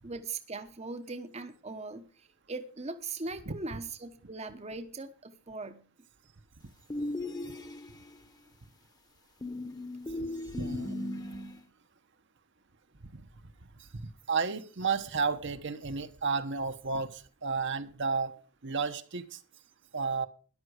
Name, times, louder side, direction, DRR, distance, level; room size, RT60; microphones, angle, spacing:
voice 1, 0.0-5.9, right 3 dB, 30° right, 8 dB, 0.9 m, -40 dB
sound 1, 6.9-8.2 9.4-11.6, left 1 dB, 20° left, 1.1 m, -37 dB
voice 2, 10.5-11.0 13.1-13.3 13.8-18.3 18.6-19.4 19.9-20.3, right 5 dB, 55° right, 8 dB, 1.1 m, -32 dB
13.0 x 11.0 x 4.8 m, 0.37 s
head